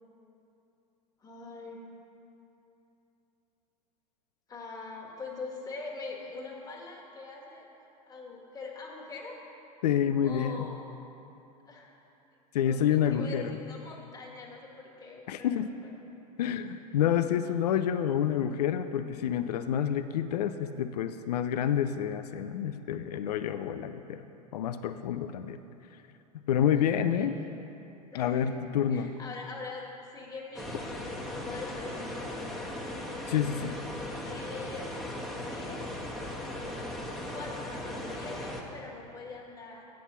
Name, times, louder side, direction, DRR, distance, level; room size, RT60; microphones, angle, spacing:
voice 1, 1.2-1.8 4.5-9.4 10.2-10.9 11.6-11.9 12.6-15.6 16.5-16.6 26.7-27.3 28.1-32.5 34.2-34.9 35.5-35.8 37.3-39.8, left 3 dB, 20° left, -3 dB, 1.6 m, -43 dB
voice 2, 9.8-10.7 12.5-13.6 15.3-15.7 16.4-24.2 24.5-25.6 26.5-27.4 28.1-29.1 33.3-33.8, left 9 dB, 80° left, 10 dB, 0.4 m, -28 dB
sound 1, 30.5-38.6, left 1 dB, ahead, 1.2 m, -38 dB
8.1 x 5.9 x 6.0 m, 3.0 s
hypercardioid pair, 95°, 20 cm